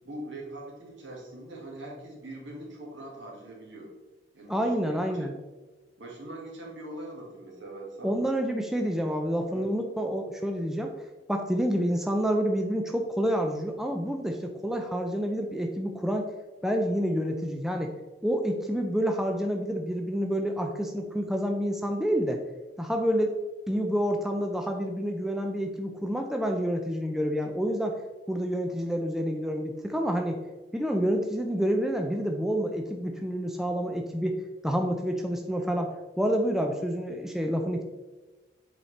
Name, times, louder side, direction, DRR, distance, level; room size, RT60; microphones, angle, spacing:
voice 1, 0.0-3.9 4.3-5.4 6.0-8.2 9.5-9.7, right 1 dB, 80° right, -2 dB, 1.9 m, -42 dB
voice 2, 4.5-5.3 8.0-10.9 11.3-16.3 16.6-17.9 18.2-22.4 22.8-23.4 23.7-28.0 28.3-30.4 30.7-34.4 34.6-37.8, equal, ahead, 3 dB, 0.4 m, -28 dB
7.6 x 4.1 x 3.2 m, 1.2 s
head